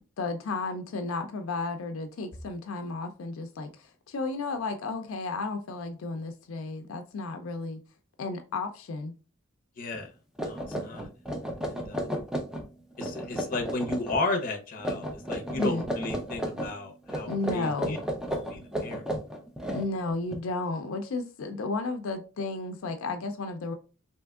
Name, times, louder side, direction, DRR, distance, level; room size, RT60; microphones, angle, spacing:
voice 1, 0.2-7.8 8.2-9.1 15.5-15.9 17.3-18.0 19.7-23.7, left 3 dB, 80° left, 0.4 m, -33 dB
voice 2, 9.8-10.1 10.4-11.1 11.7-12.2 13.0-18.0 18.5-19.0, left 2 dB, 40° left, 0.6 m, -34 dB
sound 1, 9.9-10.0 10.4-12.7 13.0-14.2 14.8-16.7 17.1-20.4, equal, 5° right, 0.4 m, -33 dB
3.4 x 2.7 x 2.3 m
head